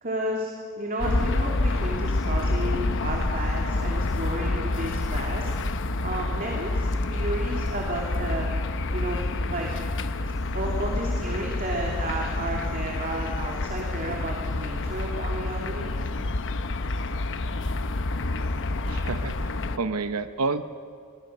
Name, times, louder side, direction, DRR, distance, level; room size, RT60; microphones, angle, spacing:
voice 1, 0.0-5.5 6.0-8.5 8.9-9.7 10.5-16.0, right 1 dB, 40° right, -1 dB, 2.8 m, -32 dB
sound 1, 1.0-19.8, left 2 dB, 60° left, 1.0 m, -28 dB
voice 2, 18.9-19.3 19.8-20.6, right 3 dB, 75° right, 10 dB, 0.9 m, -28 dB
25.5 x 21.5 x 6.7 m, 2.1 s
head